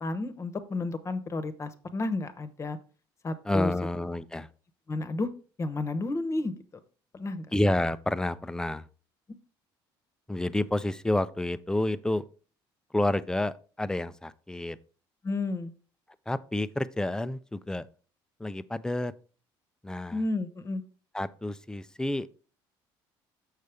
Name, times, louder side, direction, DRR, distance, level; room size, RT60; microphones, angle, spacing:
voice 1, 0.0-2.8 3.2-3.7 4.9-5.3 5.6-6.5 7.1-7.5 15.2-15.7 20.1-20.8, left 2 dB, 30° left, 1.0 m, -31 dB
voice 2, 3.4-4.5 7.5-8.9 10.3-12.2 12.9-14.8 16.3-17.9 18.4-19.1 19.8-20.2 21.1-22.3, left 1 dB, 5° left, 0.4 m, -29 dB
6.5 x 6.5 x 3.4 m
supercardioid pair, 95°, 10 cm